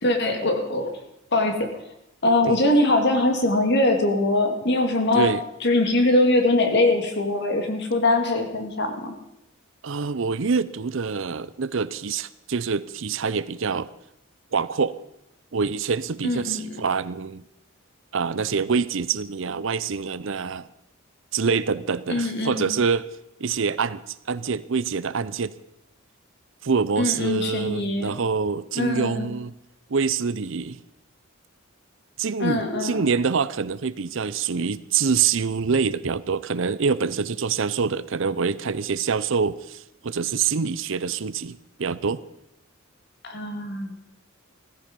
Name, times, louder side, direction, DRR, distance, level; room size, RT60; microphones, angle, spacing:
voice 1, 0.0-1.0 1.3-1.8 2.2-5.3 5.6-9.2 16.2-16.8 22.1-22.7 27.0-28.2 28.7-29.3 32.4-33.1 43.2-43.9, left 2 dB, 55° left, 6 dB, 2.3 m, -22 dB
voice 2, 9.8-13.9 14.5-15.0 15.5-17.4 18.1-20.7 21.3-23.1 23.4-25.6 26.6-29.5 29.9-30.8 32.2-42.2, right 5 dB, 65° right, 17 dB, 0.6 m, -25 dB
16.5 x 15.0 x 5.3 m, 0.82 s
head